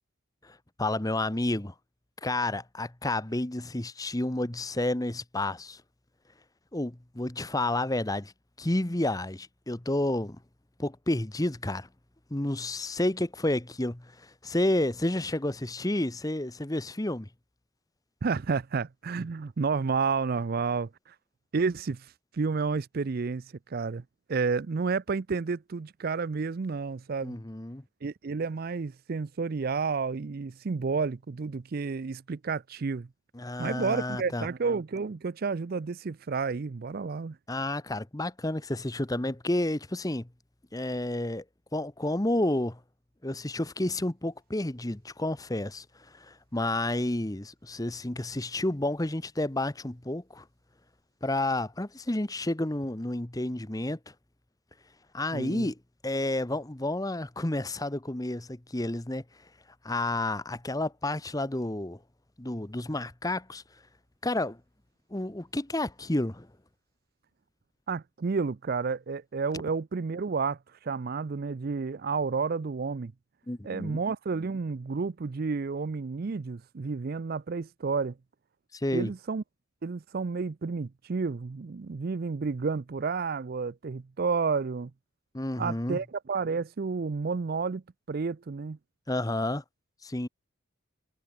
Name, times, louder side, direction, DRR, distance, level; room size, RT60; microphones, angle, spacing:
voice 1, 0.4-1.7 2.2-5.8 6.7-8.3 8.6-10.4 10.8-11.9 12.3-17.3 27.2-27.8 33.3-34.5 37.5-40.3 40.7-41.4 41.7-42.8 43.2-50.4 51.2-54.0 55.1-55.8 56.0-59.2 59.8-62.0 62.4-63.6 64.2-64.6 65.1-66.5 73.5-74.0 78.7-79.1 85.3-86.0 89.1-89.6 90.0-90.3, left 1 dB, 15° left, 0.9 m, -30 dB
voice 2, 18.2-21.1 21.5-24.0 24.3-27.4 28.0-33.1 33.6-37.4 55.3-55.7 67.9-73.1 73.6-78.1 78.9-79.4 79.8-84.9 85.6-87.8 88.1-88.8, right 4 dB, 45° right, 0.4 m, -31 dB
head